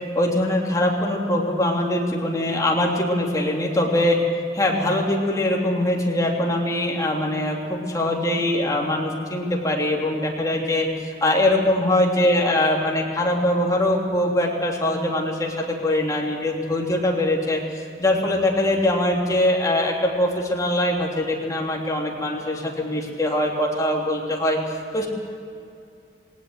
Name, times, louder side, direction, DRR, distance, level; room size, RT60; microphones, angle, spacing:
voice 1, 0.1-4.2 4.5-17.6 18.0-24.6 24.9-25.1, left 1 dB, 20° left, -1 dB, 3.2 m, -22 dB
20.0 x 18.5 x 8.1 m, 2.5 s
head